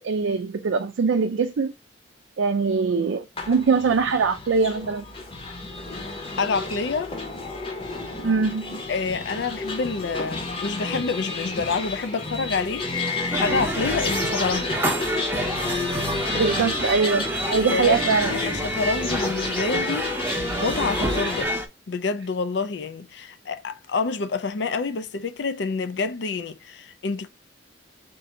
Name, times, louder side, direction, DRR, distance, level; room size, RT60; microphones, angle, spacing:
voice 1, 0.0-1.7 2.4-5.0 8.2-8.8 16.3-18.3, right 5 dB, 85° right, 0.4 m, -22 dB
sound 1, 3.4-21.4, left 3 dB, 30° left, 0.8 m, -31 dB
voice 2, 6.4-7.1 8.9-14.7 17.6-20.1 20.6-21.5 21.9-27.3, left 4 dB, 65° left, 0.4 m, -28 dB
sound 2, 13.3-21.7, right 1 dB, 10° right, 0.7 m, -28 dB
3.8 x 2.6 x 4.2 m
head